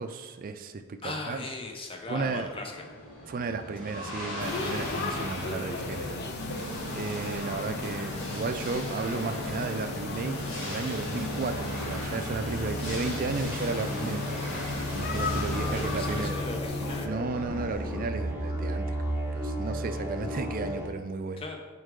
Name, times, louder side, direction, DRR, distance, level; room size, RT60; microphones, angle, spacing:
voice 1, 0.0-1.4 2.1-2.5 3.3-6.2 6.6-6.7 6.9-14.2 14.9-16.4 17.0-21.4, right 4 dB, 40° right, 8 dB, 0.4 m, -34 dB
voice 2, 1.0-2.8 6.9-7.0 15.5-17.1 21.4-21.6, left 2 dB, 25° left, 1 dB, 0.7 m, -38 dB
sound 1, 2.3-16.3, equal, 75° left, 2.0 m, -36 dB
sound 2, 4.4-17.1, left 4 dB, 50° left, 0.4 m, -36 dB
sound 3, 9.9-20.9, right 1 dB, 10° right, 1.0 m, -36 dB
6.2 x 4.7 x 3.7 m, 1.4 s
head